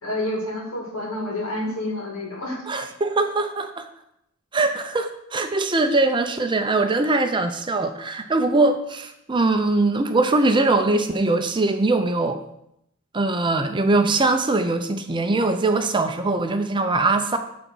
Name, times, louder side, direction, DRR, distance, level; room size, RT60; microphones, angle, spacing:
voice 1, 0.0-2.6, left 1 dB, 75° left, -1 dB, 2.5 m, -29 dB
voice 2, 2.7-3.9 4.5-12.4 13.1-17.4, right 2 dB, 20° right, 7 dB, 0.6 m, -21 dB
9.6 x 4.1 x 6.2 m, 0.78 s
head